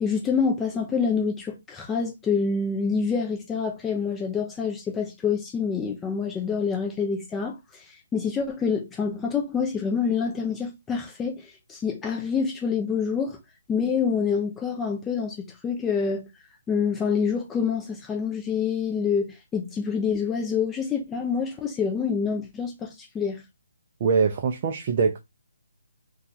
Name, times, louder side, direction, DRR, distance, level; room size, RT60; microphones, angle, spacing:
voice 1, 0.0-13.4 13.7-16.2 16.7-23.4, left 6 dB, 10° left, 0.5 m, -27 dB
voice 2, 24.0-25.2, right 5 dB, 35° right, 0.4 m, -23 dB
2.7 x 2.3 x 3.8 m
hypercardioid pair, 160°, 0 cm